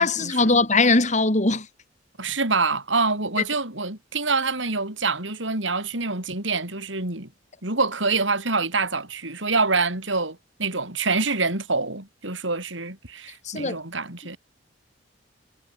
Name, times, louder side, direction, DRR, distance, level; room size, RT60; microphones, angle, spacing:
voice 1, 0.0-1.7 13.4-13.8, left 3 dB, 40° left, 2.9 m, -20 dB
voice 2, 2.2-7.3 7.6-14.4, right 3 dB, 80° right, 6.4 m, -26 dB
head